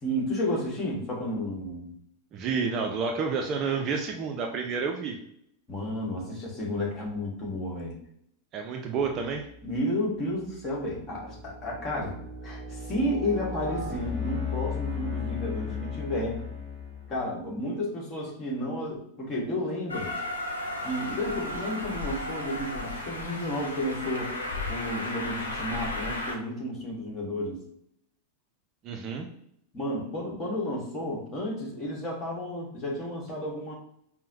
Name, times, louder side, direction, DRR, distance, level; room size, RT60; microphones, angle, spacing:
voice 1, 0.0-1.9 5.7-8.0 9.6-12.1 12.4-16.4 17.1-20.1 20.8-24.3 24.7-27.6 29.7-33.7, left 1 dB, 25° left, -3 dB, 1.3 m, -32 dB
voice 2, 2.3-5.2 8.5-9.5 28.8-29.3, right 5 dB, 35° right, 3 dB, 0.4 m, -29 dB
sound 1, 9.6-9.8 10.4-17.2, left 5 dB, 10° right, 1.0 m, -35 dB
Train, 19.9-26.3, left 2 dB, 75° left, 0.6 m, -34 dB
5.4 x 2.0 x 2.6 m, 0.71 s
figure-of-eight pair, 90°, 0 cm